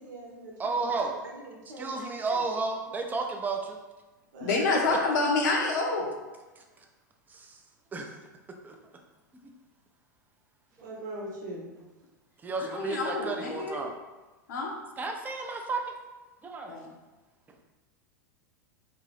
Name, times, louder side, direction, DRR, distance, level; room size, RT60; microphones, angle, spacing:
voice 1, 0.0-2.4 4.3-4.6 10.8-11.7, right 1 dB, 70° right, -2 dB, 0.9 m, -42 dB
voice 2, 0.6-1.1 1.8-3.8 4.9-5.1 6.6-6.7 7.3-7.6 7.9-8.1 8.6-8.8 10.8-10.9 12.4-13.9 15.0-15.9 16.4-16.8, right 3 dB, 15° right, 2 dB, 0.4 m, -32 dB
voice 3, 4.4-6.1 12.6-13.8 14.5-14.7 16.6-16.9, left 3 dB, 65° left, -1 dB, 0.6 m, -28 dB
2.6 x 2.5 x 3.3 m, 1.2 s
hypercardioid pair, 95°, 10 cm